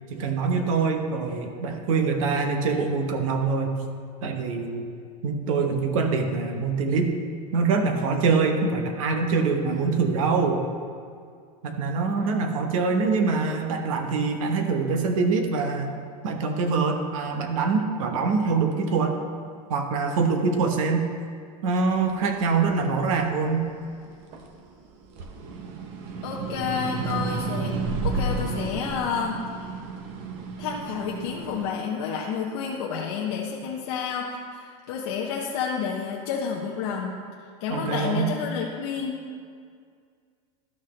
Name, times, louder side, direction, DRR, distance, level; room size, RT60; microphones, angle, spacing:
voice 1, 0.1-3.7 4.2-4.9 5.2-7.1 7.5-10.6 11.6-16.0 16.2-19.2 19.7-21.1 21.6-23.7 37.7-38.3, right 4 dB, 60° right, 5 dB, 1.0 m, -24 dB
sound 1, 22.0-24.6 25.0-31.7, right 3 dB, 35° right, 0.7 m, -32 dB
voice 2, 26.2-27.7 28.0-29.7 30.6-37.2 37.6-39.2, left 6 dB, 45° left, -2 dB, 0.7 m, -30 dB
12.5 x 5.9 x 3.2 m, 2.2 s
supercardioid pair, 180°, 19 cm